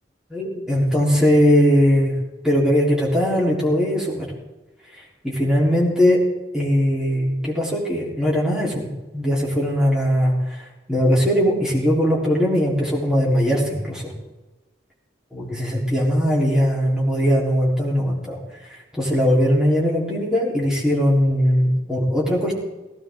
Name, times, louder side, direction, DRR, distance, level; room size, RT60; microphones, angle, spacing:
voice 1, 0.3-2.1 2.4-4.3 4.9-6.2 6.5-14.1 15.3-18.4 18.7-22.6, equal, 5° right, -5 dB, 3.7 m, -20 dB
17.0 x 16.0 x 3.8 m, 1.1 s
head